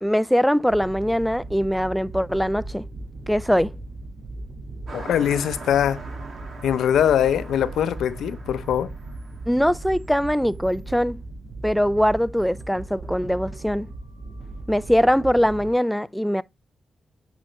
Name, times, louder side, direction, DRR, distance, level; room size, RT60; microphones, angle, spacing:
voice 1, 0.0-2.9 3.3-3.7 9.5-11.2 11.6-13.9 14.7-16.4, equal, ahead, 0.4 m, -22 dB
sound 1, 0.7-15.7, right 2 dB, 80° right, 2.5 m, -38 dB
voice 2, 4.9-6.0 6.6-8.9, left 9 dB, 90° left, 0.6 m, -22 dB
Car passing by, 4.9-10.7, right 3 dB, 65° right, 2.8 m, -43 dB
9.0 x 4.9 x 3.1 m
cardioid pair, 65°, 0 cm